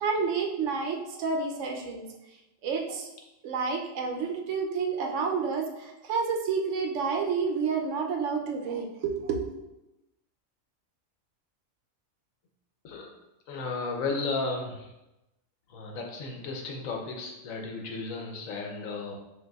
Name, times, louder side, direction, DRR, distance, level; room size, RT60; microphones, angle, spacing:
voice 1, 0.0-2.1 2.6-3.1 3.4-9.5, right 5 dB, 70° right, 2 dB, 0.9 m, -29 dB
voice 2, 13.5-14.9 15.7-19.1, left 3 dB, 85° left, 1 dB, 1.1 m, -34 dB
5.8 x 2.6 x 2.3 m, 0.94 s
omnidirectional pair, 1.4 m